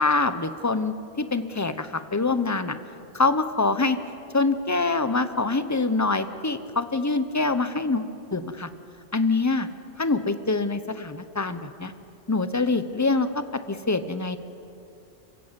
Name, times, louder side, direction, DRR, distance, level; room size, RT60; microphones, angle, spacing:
voice 1, 0.0-2.7 3.1-4.0 4.3-8.7 9.1-9.7 10.0-11.9 12.3-14.4, left 3 dB, 15° left, 11 dB, 0.7 m, -25 dB
26.5 x 16.0 x 8.2 m, 2.7 s
omnidirectional pair, 1.1 m